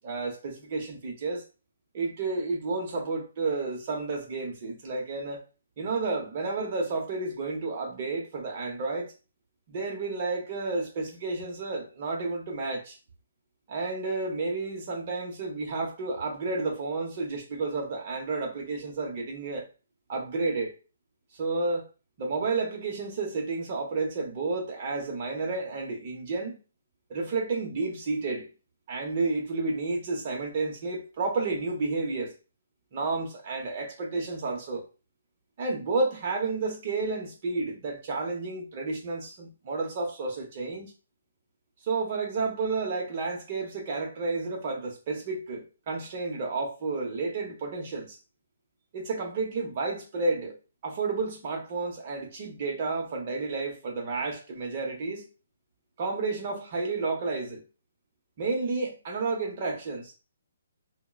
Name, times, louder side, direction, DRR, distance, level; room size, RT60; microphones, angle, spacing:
voice 1, 0.0-1.4 1.9-5.4 5.8-9.1 9.7-13.0 13.7-19.7 20.1-20.7 21.4-21.9 22.2-26.6 27.1-28.5 28.9-32.3 32.9-34.8 35.6-40.9 41.8-48.2 48.9-50.6 50.8-55.3 56.0-57.6 58.4-60.1, right 3 dB, 35° right, 0.8 m, -31 dB
3.5 x 2.1 x 2.3 m
hypercardioid pair, 170°, 0 cm